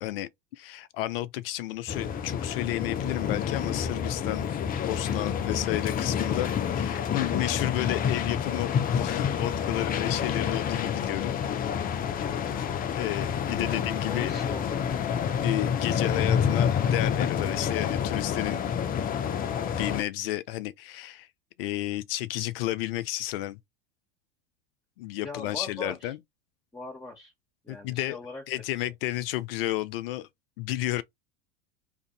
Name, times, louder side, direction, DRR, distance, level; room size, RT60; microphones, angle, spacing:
voice 1, 0.0-4.5 4.8-11.3 12.0-12.5 12.9-14.3 15.4-18.6 19.8-21.3 21.6-23.6 25.0-26.2 27.7-28.2 28.5-30.3 30.6-31.0, left 15 dB, 75° left, 0.6 m, -32 dB
sound 1, 1.9-20.0, left 8 dB, 30° left, 0.6 m, -28 dB
voice 2, 13.6-14.8 25.2-26.1 26.7-27.3 27.6-28.4, left 3 dB, 10° left, 1.2 m, -40 dB
2.7 x 2.6 x 3.9 m
hypercardioid pair, 100°, 29 cm